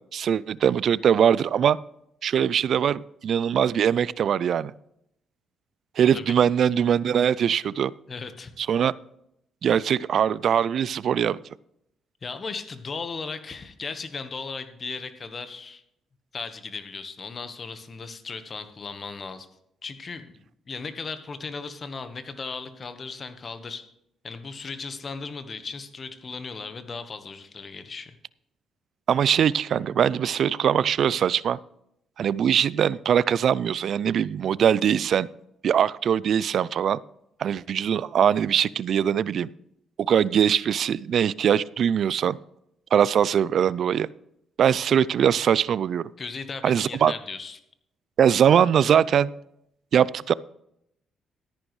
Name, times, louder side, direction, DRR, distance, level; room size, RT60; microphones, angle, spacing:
voice 1, 0.1-1.8 2.2-4.7 6.0-7.9 8.6-8.9 9.6-11.4 29.1-31.6 32.2-35.3 35.6-37.0 37.4-39.5 40.0-42.4 42.9-44.1 44.6-46.1 46.6-47.1 48.2-49.3 49.9-50.3, right 8 dB, 60° right, 21 dB, 0.3 m, -22 dB
voice 2, 8.1-8.5 12.2-15.8 16.3-19.5 19.8-20.4 20.7-23.8 24.2-28.1 46.2-47.6, left 4 dB, 40° left, 10 dB, 1.3 m, -36 dB
13.5 x 10.5 x 3.2 m, 0.77 s
cardioid pair, 90°, 0 cm